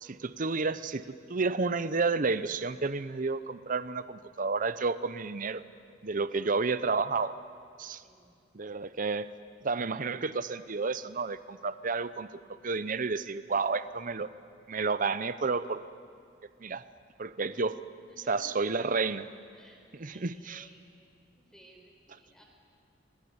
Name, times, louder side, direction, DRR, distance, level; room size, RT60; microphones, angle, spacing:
voice 1, 0.0-5.6 6.0-7.3 7.8-8.0 8.5-9.3 9.6-12.3 12.6-14.3 14.7-15.8 16.6-16.8 17.2-17.8 18.3-19.3 20.0-20.6, right 4 dB, 45° right, 14 dB, 0.7 m, -31 dB
voice 2, 8.0-8.4 17.5-17.6 18.1-18.5 19.5-20.8 21.3-22.4, equal, 5° left, 1 dB, 4.7 m, -57 dB
28.5 x 22.0 x 9.7 m, 2.3 s
head